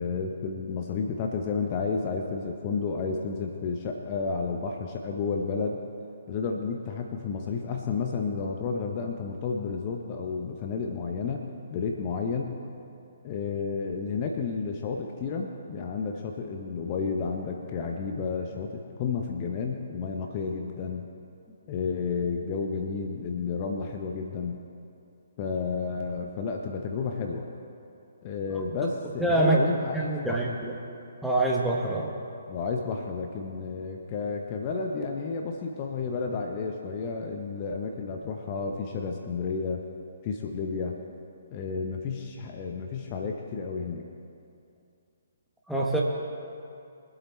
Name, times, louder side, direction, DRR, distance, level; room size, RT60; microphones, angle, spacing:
voice 1, 0.0-5.8 6.3-11.4 11.7-12.6 13.2-21.1 21.7-24.6 25.4-27.5 28.2-30.5 32.5-39.8 40.2-41.0 41.5-44.1, left 5 dB, 30° left, 2 dB, 0.9 m, -31 dB
voice 2, 29.2-29.6 29.9-30.7 31.2-32.1 45.7-46.0, right 2 dB, ahead, -3 dB, 1.4 m, -25 dB
23.0 x 8.1 x 4.4 m, 2.6 s
figure-of-eight pair, 130°, 0 cm